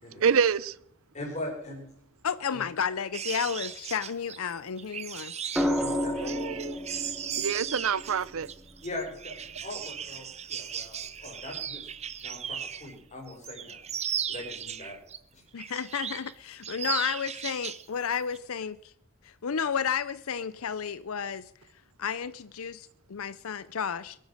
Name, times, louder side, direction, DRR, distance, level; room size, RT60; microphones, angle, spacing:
voice 1, 0.2-0.8 6.2-6.8 7.4-8.5, right 6 dB, 70° right, 0.5 m, -26 dB
voice 2, 1.1-1.8 2.5-2.6 5.8-6.6 8.8-11.9 12.2-13.8 14.3-15.0 15.3-15.4, left 1 dB, 35° left, 5.1 m, -40 dB
voice 3, 2.2-5.3 15.5-18.9 19.2-21.5 22.0-24.2, left 7 dB, 80° left, 0.6 m, -32 dB
sound 1, 3.1-12.9 13.3-15.2 15.6-16.3 16.6-17.9 18.1-18.4, right 8 dB, 30° right, 0.7 m, -37 dB
sound 2, 5.6-9.7 11.4-11.8, left 1 dB, 5° right, 1.7 m, -33 dB
22.5 x 9.3 x 6.4 m
head